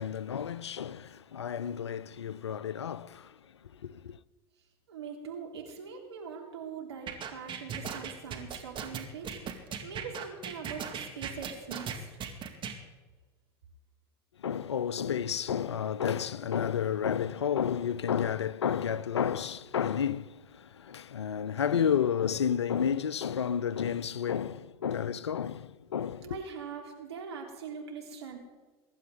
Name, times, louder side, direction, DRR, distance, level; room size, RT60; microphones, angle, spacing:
voice 1, 0.0-3.3 3.7-4.2 14.4-26.4, left 8 dB, 85° left, 0.5 m, -31 dB
voice 2, 4.9-9.4 9.8-12.2 26.2-28.4, right 6 dB, 80° right, 3.3 m, -42 dB
sound 1, 7.1-12.8, right 7 dB, 35° right, 2.2 m, -37 dB
22.5 x 11.5 x 3.9 m
figure-of-eight pair, 80°, 14 cm